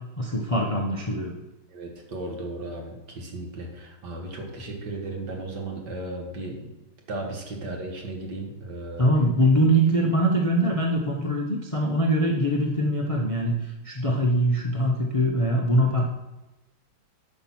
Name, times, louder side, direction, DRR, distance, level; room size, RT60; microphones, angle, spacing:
voice 1, 0.2-1.3 9.0-16.0, equal, 45° left, 0 dB, 0.4 m, -23 dB
voice 2, 1.7-6.7 7.1-9.1, right 2 dB, 55° right, 1 dB, 2.2 m, -35 dB
9.1 x 5.4 x 6.1 m, 1.0 s
omnidirectional pair, 2.2 m